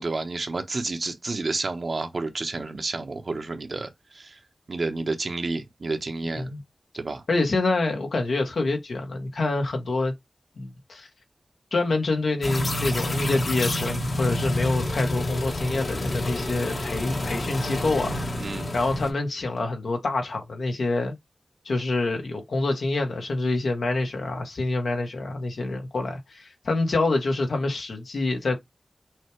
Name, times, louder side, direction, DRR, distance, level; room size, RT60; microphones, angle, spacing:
voice 1, 0.0-4.4 4.7-6.5 7.0-7.2 18.4-18.7, right 3 dB, 70° right, 1.1 m, -30 dB
voice 2, 7.3-10.1 10.6-11.1 11.7-21.2 21.6-28.6, left 2 dB, 90° left, 1.3 m, -26 dB
sound 1, 12.4-19.1, left 1 dB, 70° left, 1.3 m, -28 dB
6.2 x 2.4 x 3.2 m
cardioid pair, 45°, 0 cm